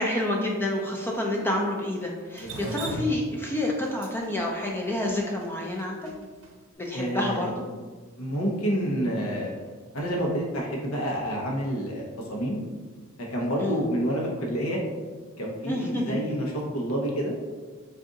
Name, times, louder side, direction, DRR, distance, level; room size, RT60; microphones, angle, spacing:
voice 1, 0.0-6.1 6.8-7.5 13.6-13.8 15.7-16.2, left 1 dB, 10° left, -1 dB, 0.4 m, -28 dB
voice 2, 2.4-2.7 6.9-7.5 8.2-9.6 9.9-12.6 13.3-14.8 15.4-17.3, equal, 75° left, -1 dB, 0.8 m, -28 dB
Drip, 2.4-6.5, right 1 dB, 65° right, 0.7 m, -38 dB
3.6 x 2.5 x 3.8 m, 1.4 s
head